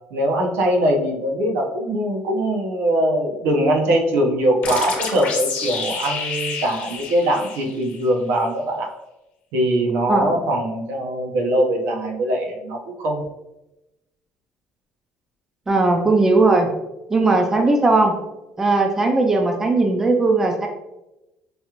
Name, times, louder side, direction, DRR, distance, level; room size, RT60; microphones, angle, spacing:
voice 1, 0.1-8.9 9.5-13.2, right 1 dB, 85° right, 1 dB, 0.9 m, -21 dB
sound 1, 4.6-8.1, left 5 dB, 50° left, 1.0 m, -29 dB
voice 2, 15.7-16.7 17.1-18.1 18.6-20.7, right 3 dB, 10° right, 3 dB, 0.4 m, -18 dB
5.2 x 2.4 x 2.9 m, 0.95 s
cardioid pair, 180°, 4 cm